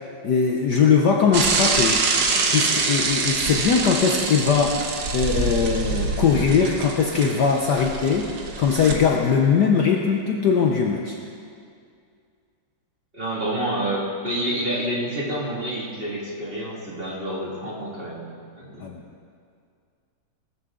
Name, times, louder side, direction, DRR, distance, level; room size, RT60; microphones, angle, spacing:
voice 1, 0.2-2.1 2.5-11.2 18.8-19.0, left 6 dB, 60° left, 1 dB, 1.2 m, -20 dB
Bicycle / Mechanisms, 1.3-8.9, right 4 dB, 60° right, 1.7 m, -25 dB
voice 2, 13.1-18.9, right 1 dB, 25° right, -5 dB, 2.3 m, -28 dB
18.0 x 13.5 x 3.7 m, 2.3 s
omnidirectional pair, 2.4 m